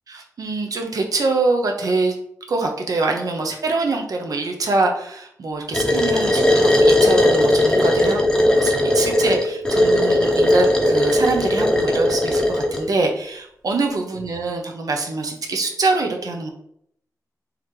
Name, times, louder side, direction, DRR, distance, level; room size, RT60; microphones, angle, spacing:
voice 1, 0.1-2.2 2.5-16.5, right 3 dB, 70° right, 3 dB, 0.8 m, -24 dB
sound 1, 5.7-12.9, left 1 dB, 10° left, 0.7 m, -18 dB
3.9 x 2.9 x 3.2 m, 0.69 s
wide cardioid pair, 120°, 6 cm